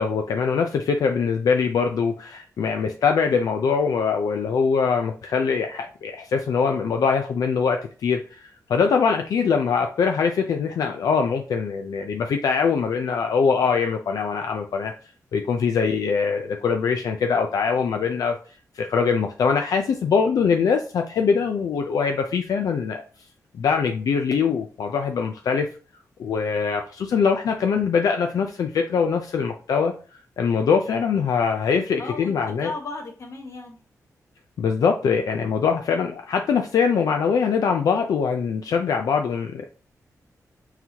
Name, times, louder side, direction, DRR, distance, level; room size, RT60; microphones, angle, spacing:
voice 1, 0.0-14.9 15.3-18.3 18.7-23.0 23.5-25.7 26.2-29.9 30.4-32.7 34.6-39.6, left 6 dB, 80° left, 4 dB, 0.4 m, -23 dB
voice 2, 31.9-33.8, left 3 dB, 55° left, 1 dB, 1.2 m, -35 dB
4.4 x 3.9 x 2.8 m, 0.38 s
wide cardioid pair, 155°, 6 cm